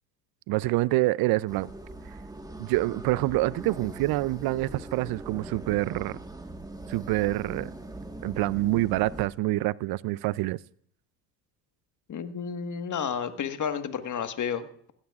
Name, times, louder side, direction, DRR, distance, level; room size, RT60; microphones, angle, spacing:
voice 1, 0.5-1.7 2.6-6.2 6.9-7.7 8.2-10.6, right 18 dB, 50° right, 0.5 m, -26 dB
sound 1, 1.5-9.3, right 2 dB, 5° right, 1.5 m, -41 dB
voice 2, 12.1-14.9, left 7 dB, 35° left, 1.6 m, -32 dB
20.0 x 16.0 x 2.4 m
hypercardioid pair, 75°, 50 cm